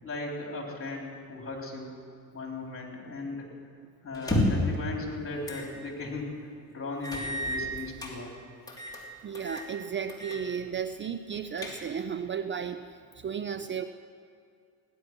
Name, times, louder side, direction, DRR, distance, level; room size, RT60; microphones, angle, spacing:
voice 1, 0.0-1.9 2.3-3.5 4.0-8.4, left 3 dB, 30° left, 0 dB, 3.9 m, -37 dB
sound 1, 4.1-4.8 5.4-5.7 6.1-6.2 7.0-8.1 8.7-9.0 9.3-9.7 10.1-10.4 10.7-10.8 11.3-12.1, left 1 dB, 10° left, 3.3 m, -31 dB
voice 2, 9.2-13.9, right 7 dB, 30° right, 10 dB, 0.5 m, -34 dB
17.0 x 11.0 x 6.1 m, 2.4 s
supercardioid pair, 85°, 41 cm